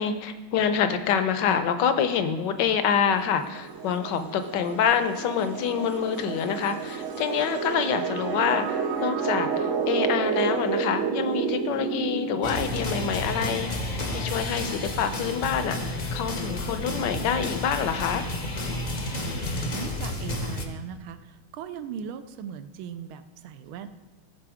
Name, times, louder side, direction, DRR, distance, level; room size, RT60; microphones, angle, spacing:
voice 1, 0.0-13.7 14.1-18.2, left 7 dB, 70° left, 9 dB, 1.2 m, -26 dB
sound 1, 2.8-13.4, right 6 dB, 60° right, 0.8 m, -30 dB
sound 2, 12.4-20.7, left 1 dB, 50° left, 0.5 m, -31 dB
voice 2, 19.4-23.9, right 8 dB, 85° right, 11 dB, 1.5 m, -39 dB
16.0 x 5.6 x 4.9 m, 1.2 s
omnidirectional pair, 2.2 m